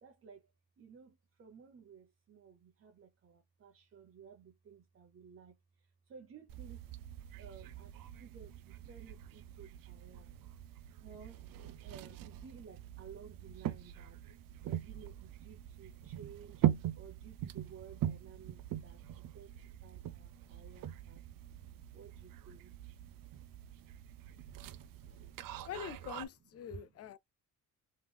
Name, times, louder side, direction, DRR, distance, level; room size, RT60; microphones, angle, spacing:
voice 1, 0.0-6.9 7.4-10.3 11.0-11.4 11.8-14.2 14.6-21.2 21.9-22.7 26.6-26.9, right 6 dB, 40° right, 0.9 m, -56 dB
sound 1, 6.5-26.2, right 12 dB, 75° right, 0.6 m, -42 dB
voice 2, 25.7-27.2, left 9 dB, 45° left, 0.4 m, -44 dB
3.6 x 3.3 x 3.4 m
cardioid pair, 145°, 34 cm